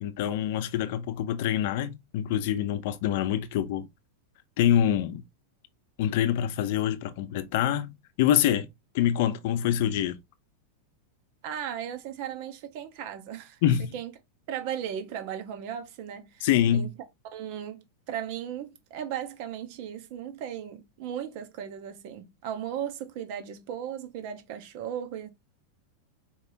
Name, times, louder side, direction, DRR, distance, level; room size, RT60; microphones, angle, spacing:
voice 1, 0.0-3.9 4.6-5.2 6.0-8.7 8.9-10.2 13.6-13.9 16.4-16.9, left 10 dB, 60° left, 0.7 m, -25 dB
voice 2, 11.4-13.6 13.9-14.1 14.5-16.9 17.2-25.3, right 9 dB, 50° right, 1.2 m, -36 dB
4.7 x 3.4 x 2.8 m
supercardioid pair, 145°, 0 cm